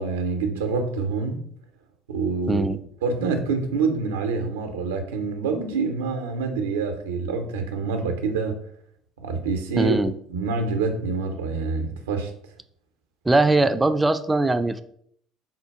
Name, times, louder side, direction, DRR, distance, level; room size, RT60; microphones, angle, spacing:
voice 1, 0.0-1.4 2.1-2.7 3.0-8.6 9.2-10.0 10.3-12.3, right 4 dB, 80° right, 0.5 m, -26 dB
voice 2, 2.5-2.8 9.8-10.1 13.3-14.8, right 2 dB, 15° right, 0.3 m, -20 dB
3.7 x 2.2 x 4.4 m
figure-of-eight pair, 60°, 0 cm